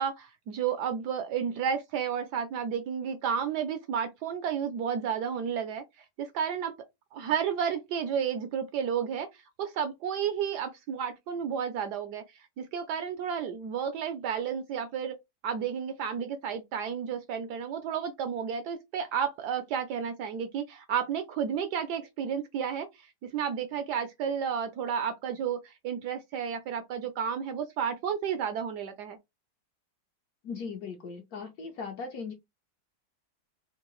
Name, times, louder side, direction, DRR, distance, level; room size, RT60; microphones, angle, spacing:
voice 1, 0.0-5.8 6.2-6.7 7.1-9.3 9.6-12.2 12.6-15.2 15.4-29.2, right 7 dB, 75° right, 1.0 m, -32 dB
voice 2, 30.4-32.3, left 5 dB, 70° left, 0.9 m, -38 dB
3.6 x 2.5 x 3.0 m
omnidirectional pair, 2.1 m